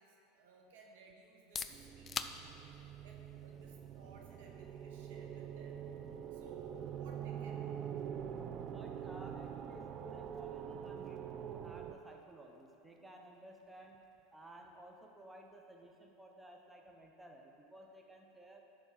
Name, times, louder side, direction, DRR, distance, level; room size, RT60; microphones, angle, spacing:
voice 1, 0.0-2.4 3.0-5.8 6.3-7.9, right 3 dB, 75° right, 0 dB, 1.4 m, -60 dB
sound 1, 1.3-16.9, left 6 dB, 25° left, 0.4 m, -53 dB
sound 2, 1.7-12.0, right 8 dB, 40° right, 0.4 m, -45 dB
voice 2, 8.6-14.0 14.3-18.6, right 1 dB, 10° right, 1 dB, 0.8 m, -55 dB
11.0 x 4.6 x 5.8 m, 2.7 s
supercardioid pair, 110°, 0 cm